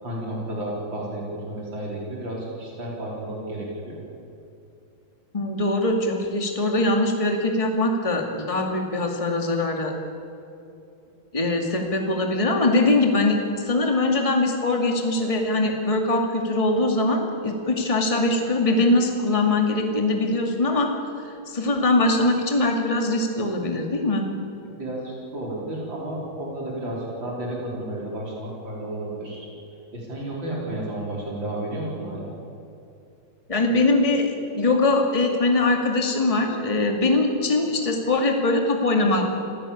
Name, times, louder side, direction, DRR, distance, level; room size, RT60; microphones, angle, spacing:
voice 1, 0.0-4.0 24.6-29.5 29.9-32.3, right 1 dB, 70° right, -3 dB, 5.2 m, -32 dB
voice 2, 5.3-9.9 11.3-13.4 13.6-20.9 21.2-24.2 33.5-39.2, left 2 dB, 15° left, 2 dB, 2.3 m, -22 dB
27.5 x 16.5 x 8.6 m, 2.7 s
omnidirectional pair, 2.1 m